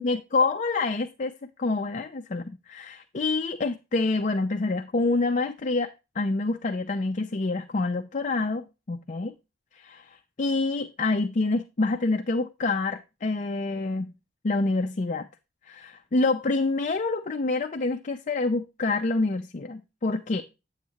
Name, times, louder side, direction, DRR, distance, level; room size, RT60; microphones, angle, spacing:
voice 1, 0.0-9.3 9.7-14.1 14.4-15.3 15.7-20.4, left 3 dB, 40° left, 0.5 m, -27 dB
9.4 x 7.3 x 2.8 m
head